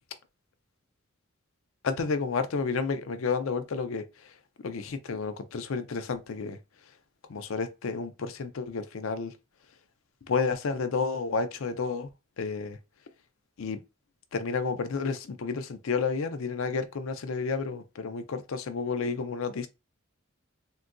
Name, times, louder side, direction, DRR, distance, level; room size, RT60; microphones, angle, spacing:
voice 1, 1.8-4.0 4.6-6.6 7.3-9.3 10.3-12.1 12.4-12.8 13.6-13.8 14.3-19.7, left 4 dB, 70° left, 0.5 m, -31 dB
3.7 x 2.5 x 2.2 m
head